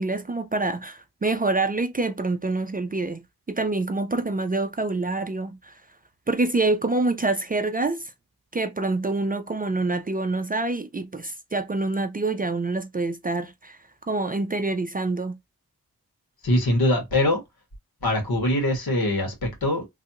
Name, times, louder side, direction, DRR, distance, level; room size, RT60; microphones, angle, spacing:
voice 1, 0.0-5.8 6.3-8.1 8.5-13.8 14.1-15.4, right 3 dB, 25° right, 0.3 m, -26 dB
voice 2, 16.4-17.4 18.0-19.8, left 1 dB, 80° left, 1.8 m, -23 dB
3.3 x 2.5 x 2.8 m
wide cardioid pair, 110°, 36 cm